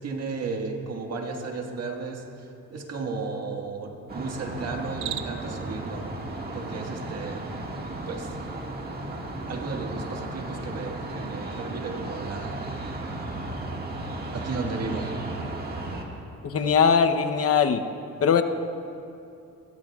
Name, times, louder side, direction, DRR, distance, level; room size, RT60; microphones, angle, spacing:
voice 1, 0.0-6.1 6.5-7.5 8.1-8.4 9.5-12.6 12.9-13.0 14.3-15.2, right 4 dB, 55° right, 2 dB, 1.7 m, -34 dB
sound 1, 4.1-16.0, right 2 dB, 30° right, 1.8 m, -35 dB
Cricket, 4.8-5.6, right 11 dB, 80° right, 0.7 m, -35 dB
voice 2, 16.4-17.8 18.2-18.4, left 6 dB, 50° left, 7 dB, 0.8 m, -20 dB
20.5 x 15.5 x 2.4 m, 2.6 s
cardioid pair, 90°, 30 cm